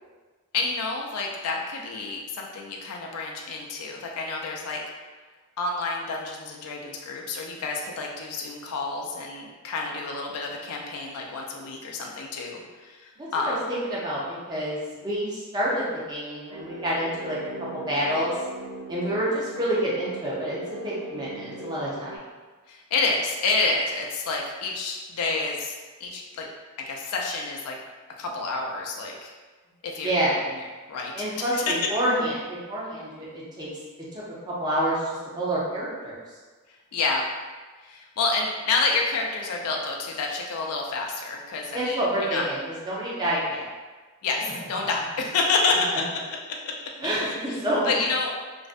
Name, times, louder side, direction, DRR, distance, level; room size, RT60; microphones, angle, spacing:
voice 1, 0.5-4.8 5.6-13.6 22.7-25.7 26.0-26.5 26.9-27.8 28.2-29.3 29.8-30.1 30.9-31.1 31.4-31.7 36.9-37.2 37.8-42.4 44.2-45.9 47.2-48.3, left 3 dB, 90° left, 0 dB, 0.4 m, -29 dB
voice 2, 13.2-17.4 17.7-18.3 18.9-22.2 30.0-30.3 31.1-33.7 34.1-36.1 41.7-43.7 44.4-44.5 47.0-47.9, right 1 dB, 20° right, -7 dB, 0.6 m, -28 dB
sound 1, 16.5-22.2, right 2 dB, 80° right, 0.4 m, -39 dB
2.5 x 2.1 x 2.5 m, 1.4 s
head